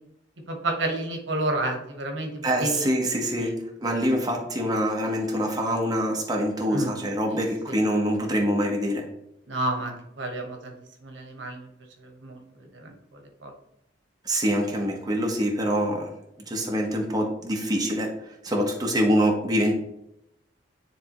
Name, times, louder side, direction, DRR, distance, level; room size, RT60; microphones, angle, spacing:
voice 1, 0.5-2.9 3.3-3.5 6.7-6.9 7.3-7.4 7.7-7.8 9.5-10.7 11.0-11.7 12.0-12.4 12.7-13.5, right 1 dB, 80° right, 3 dB, 1.2 m, -30 dB
voice 2, 2.4-9.1 14.2-16.1 16.5-19.7, equal, 20° right, 0 dB, 1.1 m, -25 dB
10.0 x 3.4 x 3.0 m, 0.80 s
head